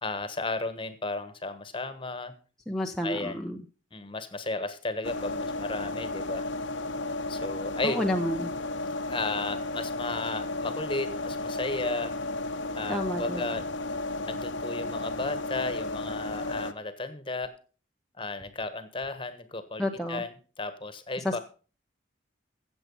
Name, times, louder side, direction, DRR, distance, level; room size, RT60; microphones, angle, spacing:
voice 1, 0.0-2.3 3.0-3.4 3.9-6.5 7.3-8.0 9.1-12.2 12.7-13.7 14.3-17.6 18.2-21.4, left 2 dB, 25° left, 12 dB, 1.3 m, -34 dB
voice 2, 2.7-3.6 7.8-8.5 12.9-13.4 19.8-20.2 21.2-21.4, left 1 dB, 5° left, 1 dB, 0.8 m, -30 dB
sound 1, 5.0-16.7, left 2 dB, 75° left, 1.1 m, -33 dB
15.5 x 7.4 x 5.5 m, 0.37 s
head